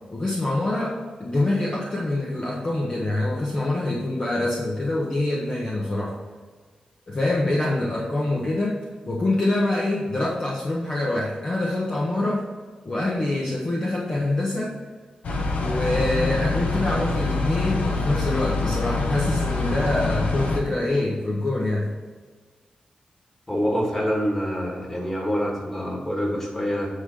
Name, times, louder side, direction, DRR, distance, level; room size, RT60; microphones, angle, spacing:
voice 1, 0.1-6.2 7.1-12.4 12.8-14.7 15.6-21.9, left 2 dB, 35° left, -4 dB, 1.4 m, -25 dB
sound 1, 15.2-20.6, left 3 dB, 75° left, 1.3 m, -25 dB
voice 2, 23.5-26.9, equal, 20° left, -3 dB, 2.7 m, -26 dB
9.7 x 3.9 x 6.7 m, 1.4 s
wide cardioid pair, 110°, 2 cm